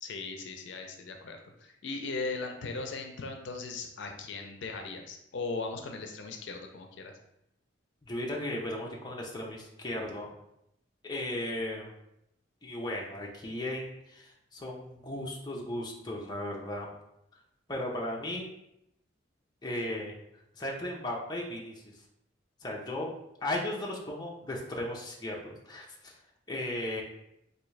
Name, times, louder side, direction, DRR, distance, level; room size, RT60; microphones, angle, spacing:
voice 1, 0.0-7.1, left 3 dB, 75° left, 4 dB, 0.4 m, -38 dB
voice 2, 8.0-10.3 11.0-11.9 12.6-16.9 17.7-18.5 19.6-20.1 20.5-22.0 22.6-23.1 23.4-26.2 26.5-27.0, left 1 dB, 20° left, -2 dB, 0.5 m, -36 dB
3.6 x 2.6 x 3.2 m, 0.81 s
head